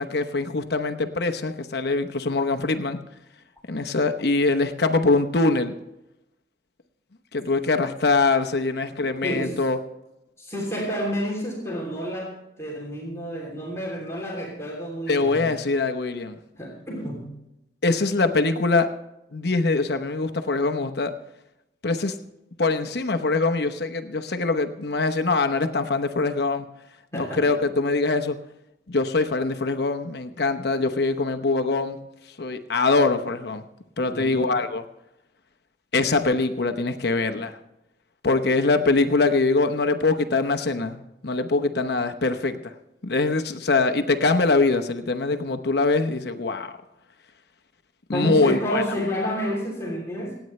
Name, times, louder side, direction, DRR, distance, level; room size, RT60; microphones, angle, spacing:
voice 1, 0.0-3.0 3.7-5.7 7.3-9.8 15.1-16.4 17.8-18.9 19.3-21.1 21.8-22.1 22.6-26.7 27.1-28.4 28.9-32.0 32.4-33.7 34.0-34.8 35.9-37.5 38.2-42.7 43.0-46.8 48.1-48.8, left 3 dB, 65° left, 7 dB, 0.9 m, -23 dB
voice 2, 9.2-9.6 10.4-15.5 16.6-17.3 27.1-27.6 34.0-34.5 48.1-50.3, equal, 15° left, -4 dB, 3.1 m, -30 dB
26.5 x 9.1 x 3.2 m, 0.89 s
head